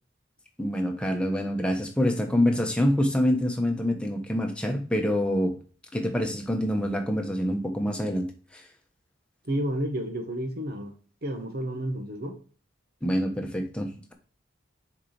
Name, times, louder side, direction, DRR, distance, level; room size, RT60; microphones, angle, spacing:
voice 1, 0.6-5.6 5.9-8.3 8.5-8.6 13.0-14.1, equal, 5° left, 2 dB, 1.2 m, -26 dB
voice 2, 9.4-10.9 11.2-12.4, right 1 dB, 55° right, 4 dB, 1.4 m, -31 dB
6.6 x 4.7 x 3.3 m, 0.40 s
head